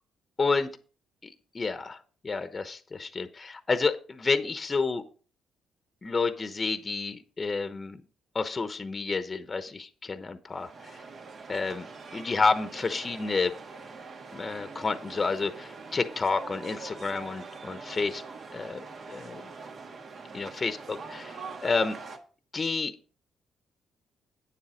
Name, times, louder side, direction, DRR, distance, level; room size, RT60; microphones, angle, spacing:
voice 1, 0.4-0.7 1.2-2.0 2.2-5.0 6.0-8.0 8.3-11.0 11.5-11.9 12.1-13.5 14.3-18.2 18.5-19.5 20.3-22.0 22.5-22.9, left 4 dB, 30° left, 10 dB, 0.9 m, -30 dB
sound 1, 10.5-22.2, right 4 dB, 50° right, 1.5 m, -44 dB
9.2 x 7.4 x 5.1 m, 0.39 s
cardioid pair, 90°, 0 cm